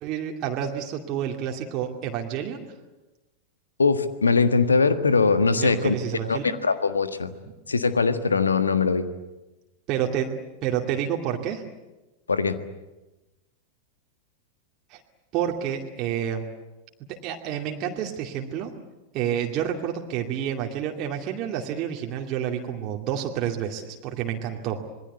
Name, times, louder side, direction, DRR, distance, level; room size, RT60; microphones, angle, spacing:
voice 1, 0.0-2.6 5.6-6.6 9.9-10.3 10.6-11.7 14.9-15.0 15.3-16.4 17.1-18.7 19.1-24.8, right 9 dB, 40° right, 2 dB, 2.4 m, -29 dB
voice 2, 3.8-5.9 6.2-7.3 7.7-9.1 12.3-12.6, left 4 dB, 75° left, 11 dB, 1.5 m, -21 dB
26.5 x 21.5 x 8.3 m, 1.0 s
figure-of-eight pair, 90°, 0 cm